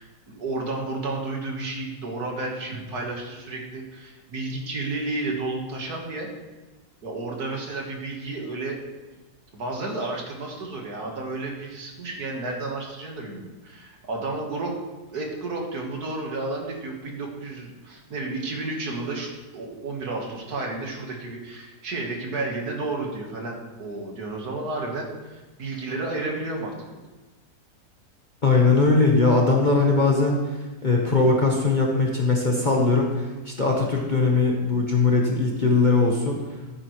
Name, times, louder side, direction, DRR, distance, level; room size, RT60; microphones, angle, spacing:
voice 1, 0.0-6.3 7.0-8.8 9.5-14.7 15.1-26.7, right 2 dB, 60° right, 0 dB, 2.0 m, -32 dB
voice 2, 28.4-30.4 30.8-36.4, left 3 dB, 30° left, -1 dB, 1.1 m, -20 dB
14.5 x 8.5 x 3.2 m, 1.2 s
omnidirectional pair, 1.9 m